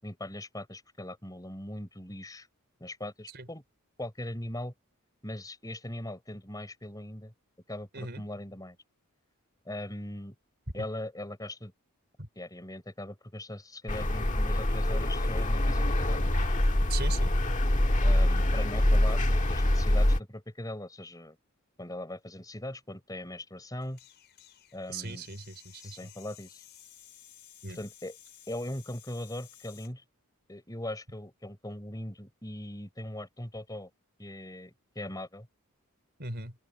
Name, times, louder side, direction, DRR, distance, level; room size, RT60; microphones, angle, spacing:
voice 1, 0.0-2.5 2.8-3.6 4.0-4.7 5.2-7.3 7.7-8.8 9.6-10.3 10.7-11.7 12.4-16.3 18.0-21.4 21.8-24.0 24.7-25.3 25.8-26.6 27.7-28.2 28.5-30.0 30.5-33.9 34.2-35.5, left 1 dB, 15° left, 4.5 m, -40 dB
sound 1, 13.9-20.2, left 1 dB, 35° left, 1.6 m, -25 dB
voice 2, 16.9-17.3 18.2-18.3 24.9-26.0 27.6-27.8 36.2-36.5, right 3 dB, 45° right, 4.8 m, -39 dB
sound 2, 23.8-29.9, left 11 dB, 50° left, 6.0 m, -55 dB
head